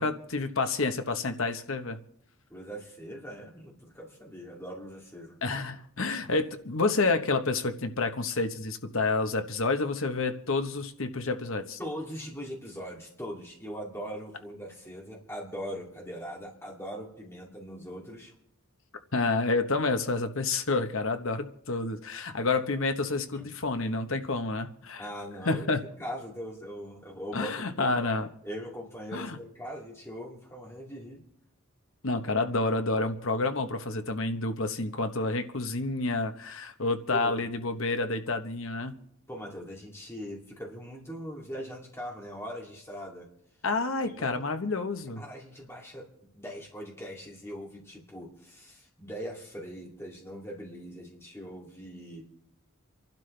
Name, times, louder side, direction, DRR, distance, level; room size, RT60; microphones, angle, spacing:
voice 1, 0.0-2.0 5.4-11.8 19.1-25.0 25.4-25.8 27.3-28.3 29.1-29.4 32.0-38.9 43.6-45.2, left 3 dB, 60° left, 7 dB, 1.1 m, -29 dB
voice 2, 2.5-5.4 11.8-18.3 22.1-22.2 23.3-23.5 25.0-25.7 26.0-28.0 28.4-31.2 37.1-37.5 39.3-43.3 44.0-44.6 45.2-46.1 46.3-52.3, equal, 10° left, -2 dB, 2.7 m, -41 dB
28.5 x 12.0 x 3.3 m, 0.73 s
head